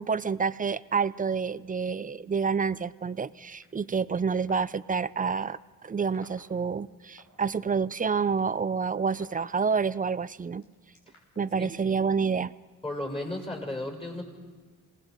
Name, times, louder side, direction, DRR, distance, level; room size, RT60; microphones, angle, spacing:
voice 1, 0.0-10.6 11.4-12.5, right 5 dB, 25° right, 17 dB, 0.5 m, -28 dB
sound 1, 3.6-3.7 4.5-4.6 5.2-5.4 6.1-6.4 7.2-7.3 7.9-10.0 10.6-11.4, left 3 dB, 80° left, 5.9 m, -50 dB
voice 2, 12.8-14.2, left 1 dB, 15° left, 2 dB, 6.1 m, -34 dB
27.5 x 19.0 x 5.2 m, 1.4 s
cardioid pair, 80°, 34 cm